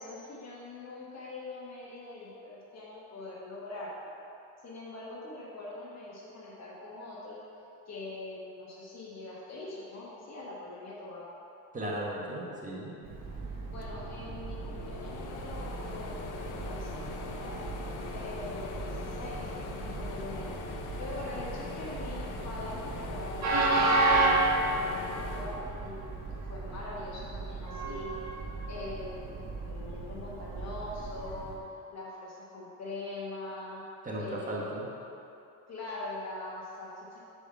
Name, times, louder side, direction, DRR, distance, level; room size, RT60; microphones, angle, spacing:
voice 1, 0.0-4.1 4.6-7.4 7.9-11.3 13.6-17.6 18.1-20.5 21.0-26.1 26.5-28.2 28.7-31.6 31.9-33.8 34.2-34.8 35.7-37.2, left 2 dB, 45° left, -5 dB, 1.6 m, -43 dB
voice 2, 11.7-13.0 34.0-34.9, right 1 dB, 20° right, -4 dB, 1.6 m, -36 dB
Train, 13.0-31.6, right 2 dB, 45° right, 1.4 m, -33 dB
sound 1, 13.8-26.4 26.8-28.0, left 5 dB, 85° left, 0.8 m, -42 dB
5.3 x 4.8 x 6.0 m, 2.8 s
cardioid pair, 110°, 37 cm